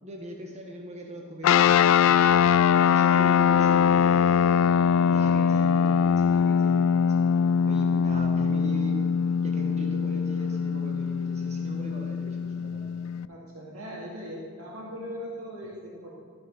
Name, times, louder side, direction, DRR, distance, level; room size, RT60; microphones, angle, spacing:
voice 1, 0.0-2.5 2.8-4.7 5.1-7.3 7.6-9.0 9.4-12.9, equal, 30° right, 0 dB, 1.2 m, -40 dB
sound 1, 1.4-13.3, left 7 dB, 65° left, 0.3 m, -22 dB
voice 2, 13.3-16.1, equal, 80° right, -5 dB, 2.2 m, -39 dB
12.5 x 6.4 x 5.9 m, 2.1 s
head